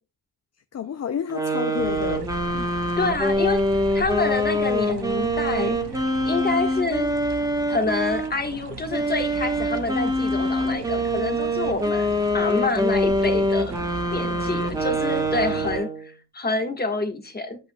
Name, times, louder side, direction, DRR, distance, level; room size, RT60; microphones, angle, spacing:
voice 1, 0.7-2.3 14.1-14.7 15.5-15.6, left 8 dB, 40° left, 0.5 m, -31 dB
sound 1, 1.3-8.3 8.9-16.1, equal, 10° right, 1.1 m, -25 dB
sound 2, 1.8-15.8, right 5 dB, 60° right, 1.0 m, -38 dB
voice 2, 3.0-5.8 6.2-7.1 7.7-12.1 12.3-13.7 14.1-17.6, left 3 dB, 20° left, 1.4 m, -27 dB
8.5 x 8.1 x 2.2 m
wide cardioid pair, 140°, 44 cm